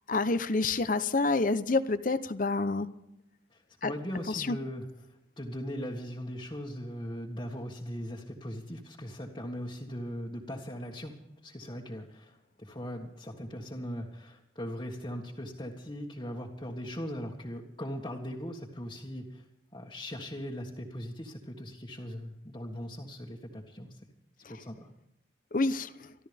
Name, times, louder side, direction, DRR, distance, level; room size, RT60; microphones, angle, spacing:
voice 1, 0.1-2.9 3.8-3.9 4.3-4.6 25.5-25.9, left 3 dB, 45° left, 12 dB, 0.8 m, -28 dB
voice 2, 3.5-4.8 5.4-19.4 19.7-24.0 24.5-24.9, equal, 25° left, -2 dB, 1.7 m, -39 dB
27.0 x 12.5 x 3.5 m, 0.85 s
head